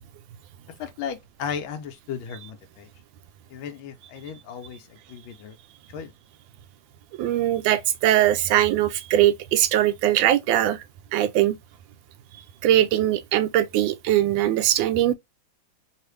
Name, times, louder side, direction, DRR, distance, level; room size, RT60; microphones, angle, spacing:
voice 1, 0.8-2.9 3.5-4.8 5.1-5.6 5.9-6.1, left 7 dB, 85° left, 1.4 m, -35 dB
voice 2, 7.2-10.8 11.1-11.6 12.6-15.1, right 12 dB, 75° right, 1.2 m, -21 dB
3.2 x 2.5 x 3.2 m
omnidirectional pair, 2.2 m